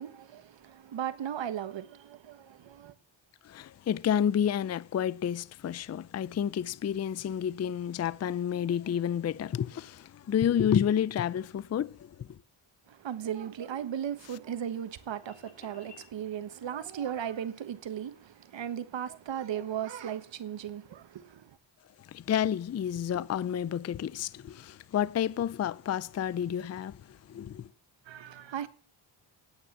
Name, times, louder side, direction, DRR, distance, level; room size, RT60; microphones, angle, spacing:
voice 1, 0.0-2.9 12.9-21.6 28.0-28.7, right 9 dB, 65° right, 1.4 m, -37 dB
voice 2, 3.4-12.3 22.1-27.0 27.3-27.7, left 9 dB, 35° left, 0.5 m, -30 dB
sound 1, 13.4-16.2, left 4 dB, 15° left, 2.1 m, -58 dB
9.6 x 8.7 x 7.2 m
cardioid pair, 105°, 47 cm